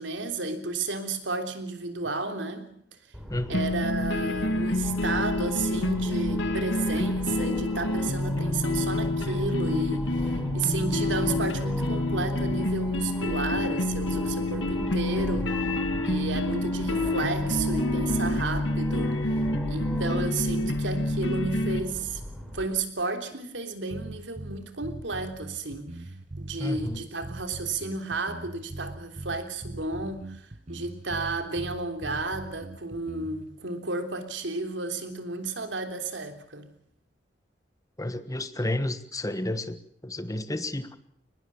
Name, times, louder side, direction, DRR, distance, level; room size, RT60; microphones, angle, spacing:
voice 1, 0.0-2.7 3.5-15.5 16.0-19.2 19.7-26.1 26.4-36.7, right 3 dB, 90° right, 6 dB, 3.4 m, -32 dB
sound 1, 3.1-22.6, equal, ahead, 5.7 m, -37 dB
voice 2, 3.3-3.7 26.6-27.0 38.0-41.0, left 1 dB, 20° left, 12 dB, 1.4 m, -31 dB
sound 2, 3.5-21.8, left 2 dB, 85° left, 2.1 m, -28 dB
sound 3, 23.9-33.5, right 1 dB, 40° right, 1.0 m, -41 dB
23.5 x 20.0 x 7.2 m, 0.65 s
head